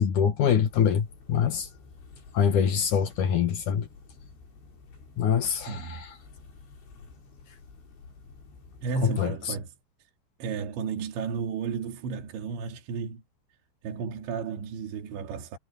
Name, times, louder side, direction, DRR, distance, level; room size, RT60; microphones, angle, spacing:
voice 1, 0.0-1.7 2.3-3.9 5.2-6.1 9.0-9.3, left 8 dB, 65° left, 2.1 m, -24 dB
sound 1, 0.7-9.1, left 4 dB, 90° left, 8.9 m, -51 dB
voice 2, 5.7-6.0 8.8-9.7 10.4-13.2 13.8-15.6, right 5 dB, 75° right, 4.7 m, -33 dB
omnidirectional pair, 5.2 m